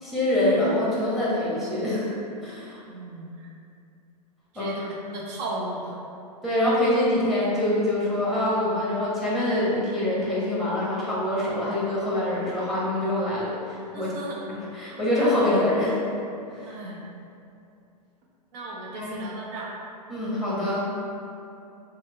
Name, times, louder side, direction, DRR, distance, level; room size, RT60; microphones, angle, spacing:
voice 1, 0.0-2.2 2.4-2.8 4.5-4.7 6.4-16.0 16.5-16.7 18.9-19.2 20.1-20.9, left 1 dB, ahead, -7 dB, 1.1 m, -25 dB
voice 2, 2.9-3.5 4.5-6.0 13.9-14.4 16.7-17.0 18.5-19.7, right 2 dB, 45° right, -4 dB, 0.9 m, -35 dB
4.2 x 2.1 x 3.7 m, 2.6 s
hypercardioid pair, 120°, 21 cm